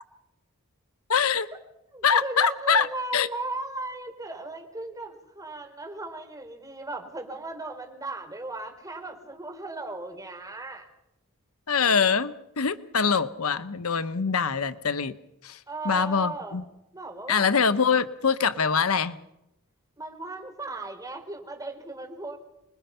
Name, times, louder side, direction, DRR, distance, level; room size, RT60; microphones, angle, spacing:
voice 1, 1.1-1.5 2.0-3.3 11.7-15.1 15.4-16.6 17.3-19.2, left 6 dB, 80° left, 13 dB, 1.0 m, -24 dB
voice 2, 1.9-10.9 15.7-16.6 16.9-17.5 20.0-22.4, right 2 dB, 15° right, 4 dB, 3.9 m, -37 dB
27.0 x 21.5 x 5.7 m, 0.88 s
head